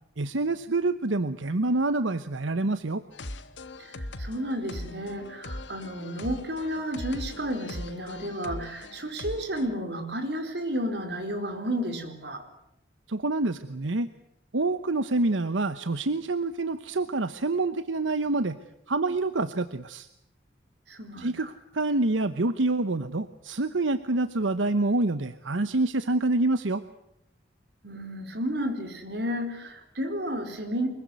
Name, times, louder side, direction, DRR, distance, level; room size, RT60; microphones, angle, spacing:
voice 1, 0.2-3.0 13.1-14.1 14.5-18.6 18.9-20.1 21.2-21.5 21.7-26.8, right 2 dB, 90° right, 12 dB, 1.0 m, -27 dB
sound 1, 3.1-9.8, left 1 dB, 75° left, 1.7 m, -40 dB
voice 2, 3.8-12.4 20.9-21.5 27.8-30.9, equal, 60° right, 6 dB, 4.6 m, -32 dB
24.5 x 22.5 x 9.4 m, 0.78 s
head